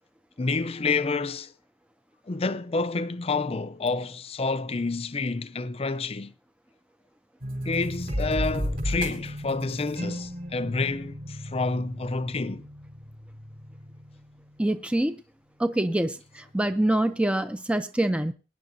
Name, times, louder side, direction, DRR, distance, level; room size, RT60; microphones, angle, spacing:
voice 1, 0.4-1.5 2.3-6.3 7.6-12.6, left 3 dB, 35° left, 0.6 m, -29 dB
sound 1, 7.4-14.2, equal, 55° right, 4.6 m, -34 dB
voice 2, 14.6-15.2 15.6-18.3, right 1 dB, 5° right, 0.6 m, -25 dB
21.5 x 10.0 x 2.7 m
head